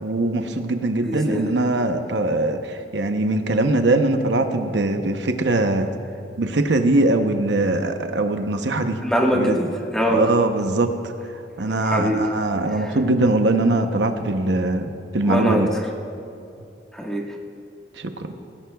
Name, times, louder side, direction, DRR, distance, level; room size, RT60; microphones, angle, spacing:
voice 1, 0.0-5.9 6.4-9.0 9.3-9.6 10.1-10.9 11.6-15.7 18.0-18.1, right 2 dB, 80° right, 6 dB, 0.8 m, -21 dB
voice 2, 1.0-1.5 9.0-10.3 11.8-12.2 15.2-15.7 16.9-17.3, equal, 5° left, -2 dB, 1.5 m, -22 dB
21.5 x 16.0 x 2.3 m, 2.6 s
head